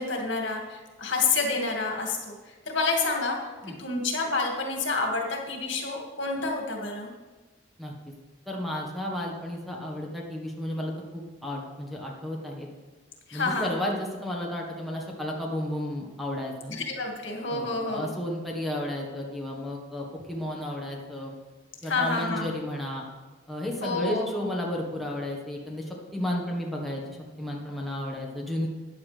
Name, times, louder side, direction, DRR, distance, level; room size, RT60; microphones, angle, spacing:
voice 1, 0.0-3.4 3.8-7.1 13.3-13.8 16.7-18.1 21.8-22.5 23.8-24.5, left 3 dB, 75° left, 1 dB, 2.2 m, -29 dB
voice 2, 8.5-12.7 13.3-16.8 17.5-21.3 21.8-23.0 23.5-27.0 27.4-28.7, left 1 dB, ahead, -2 dB, 1.5 m, -33 dB
14.0 x 9.8 x 3.4 m, 1.3 s
head